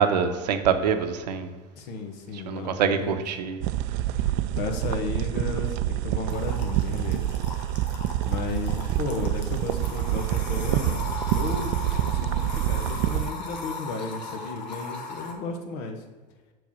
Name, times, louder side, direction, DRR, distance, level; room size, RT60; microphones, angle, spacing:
voice 1, 0.0-1.5 2.5-3.6, right 7 dB, 80° right, 8 dB, 0.8 m, -24 dB
voice 2, 1.8-3.2 4.2-7.4 8.3-11.0 11.3-16.0, left 3 dB, 65° left, 5 dB, 1.3 m, -34 dB
sound 1, 3.6-13.3, right 13 dB, 60° right, 0.4 m, -27 dB
sound 2, 6.3-15.3, left 4 dB, 90° left, 1.1 m, -38 dB
6.9 x 4.5 x 6.3 m, 1.4 s
hypercardioid pair, 80°, 21 cm